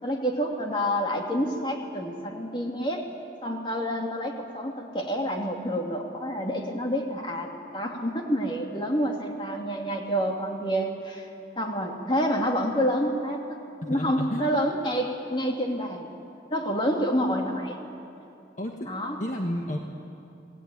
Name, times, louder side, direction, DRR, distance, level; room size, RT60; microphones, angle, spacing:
voice 1, 0.0-3.0 3.4-11.3 11.6-13.6 13.9-16.1 16.5-17.8 18.9-19.2, equal, 25° left, 1 dB, 2.5 m, -28 dB
voice 2, 13.8-14.4 18.6-18.9 19.2-19.8, left 1 dB, 45° left, 1 dB, 1.5 m, -31 dB
28.0 x 18.5 x 9.4 m, 2.8 s
head